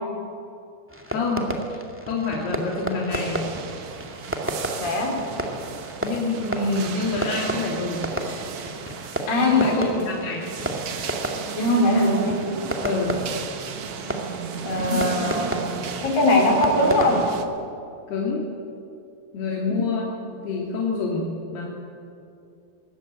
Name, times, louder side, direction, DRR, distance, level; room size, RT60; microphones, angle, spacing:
Fireworks, 0.9-17.4, right 1 dB, 5° right, 0.9 m, -32 dB
voice 1, 1.1-3.5 6.0-8.1 9.4-10.4 11.9-12.1 12.8-13.3 14.9-15.1 18.1-18.5 19.3-21.7, left 3 dB, 80° left, -3 dB, 4.6 m, -27 dB
sound 1, 3.1-17.5, right 7 dB, 60° right, 1.6 m, -35 dB
voice 2, 4.8-5.1 9.3-10.0 11.6-12.3 14.6-15.6 16.0-17.2 19.7-19.8, left 1 dB, 60° left, 0 dB, 6.0 m, -21 dB
23.5 x 19.5 x 8.9 m, 2.6 s
omnidirectional pair, 4.6 m